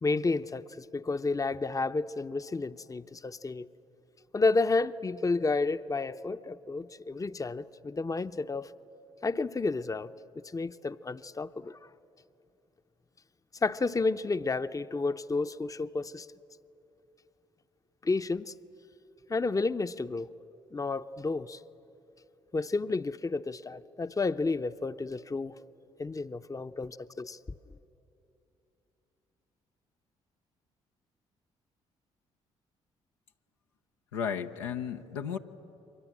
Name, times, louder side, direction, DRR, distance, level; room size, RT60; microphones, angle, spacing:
voice 1, 0.0-3.7 4.3-8.7 9.2-10.1 10.5-11.8 13.6-16.3 18.0-18.5 19.3-20.3 20.7-21.6 22.5-25.6 26.0-27.4, left 3 dB, 25° left, 12 dB, 0.7 m, -31 dB
voice 2, 34.1-35.4, left 7 dB, 85° left, 4 dB, 0.8 m, -34 dB
29.5 x 23.5 x 7.4 m, 2.9 s
hypercardioid pair, 45°, 15 cm